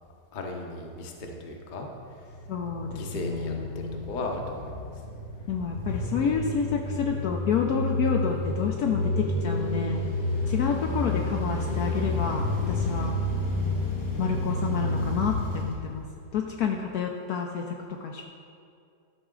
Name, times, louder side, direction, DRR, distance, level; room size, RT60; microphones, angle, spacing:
voice 1, 0.3-1.9 2.9-4.8 10.6-10.9, left 2 dB, 40° left, 1 dB, 0.7 m, -36 dB
sound 1, 2.2-16.5, left 2 dB, 90° left, 2.8 m, -30 dB
voice 2, 2.5-4.1 5.5-10.0 10.5-13.1 14.2-16.0 16.3-17.6 18.0-18.2, left 6 dB, 70° left, 2 dB, 1.0 m, -29 dB
12.0 x 5.9 x 3.7 m, 2.4 s
omnidirectional pair, 1.9 m